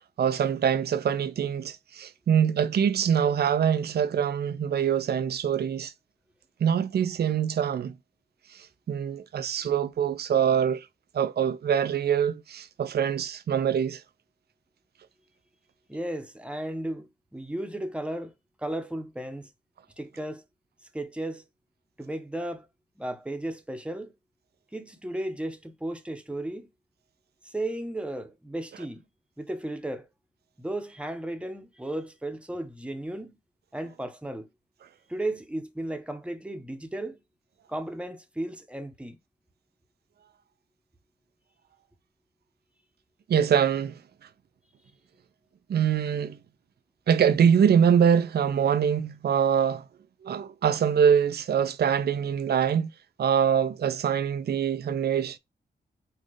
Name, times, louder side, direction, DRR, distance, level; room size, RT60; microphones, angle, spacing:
voice 1, 0.2-5.9 6.6-7.9 8.5-10.9 11.1-14.0 43.3-44.0 45.7-46.4 47.1-49.8 50.2-52.9 53.2-55.4, right 8 dB, 60° right, 0.5 m, -24 dB
voice 2, 15.9-18.3 18.6-19.5 20.0-20.4 20.9-21.4 22.0-22.7 23.0-24.1 24.7-26.7 27.4-29.1 29.4-30.1 30.6-33.4 33.7-34.5 35.1-37.2 37.7-39.2, right 1 dB, 5° right, 0.9 m, -34 dB
4.3 x 2.4 x 2.9 m
cardioid pair, 55°, 18 cm